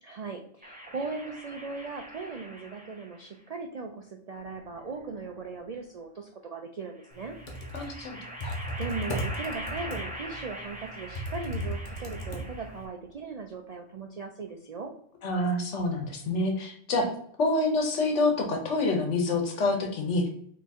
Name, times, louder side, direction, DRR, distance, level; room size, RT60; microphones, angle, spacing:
voice 1, 0.0-7.3 8.8-14.9 17.0-17.1, right 4 dB, 65° right, 3 dB, 0.3 m, -38 dB
sound 1, 0.6-3.3 4.4-5.4 7.0-13.0, equal, 10° right, 0.7 m, -42 dB
Computer keyboard, 7.3-12.9, equal, 45° left, 0.9 m, -36 dB
voice 2, 7.7-8.5 15.2-17.1 17.4-20.3, left 2 dB, 70° left, 3 dB, 1.2 m, -27 dB
3.5 x 2.9 x 4.1 m, 0.65 s
omnidirectional pair, 1.2 m